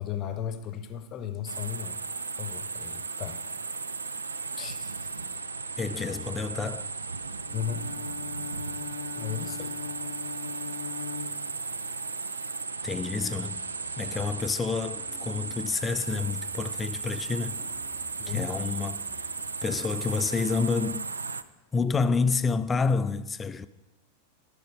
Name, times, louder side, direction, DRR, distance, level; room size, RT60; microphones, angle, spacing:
voice 1, 0.0-3.4 4.6-4.9 7.5-7.9 9.1-9.7 18.2-18.5, left 9 dB, 35° left, 0.8 m, -35 dB
sound 1, 1.5-21.4, right 4 dB, 75° right, 0.3 m, -36 dB
voice 2, 5.8-6.9 12.8-13.6 14.0-17.6 18.3-19.0 19.6-21.1 21.7-23.7, left 4 dB, 15° left, 0.4 m, -28 dB
Bowed string instrument, 7.4-12.0, left 8 dB, 65° left, 0.7 m, -40 dB
sound 2, 12.9-19.9, right 2 dB, 15° right, 0.8 m, -54 dB
13.5 x 5.0 x 4.9 m
figure-of-eight pair, 90°, 0 cm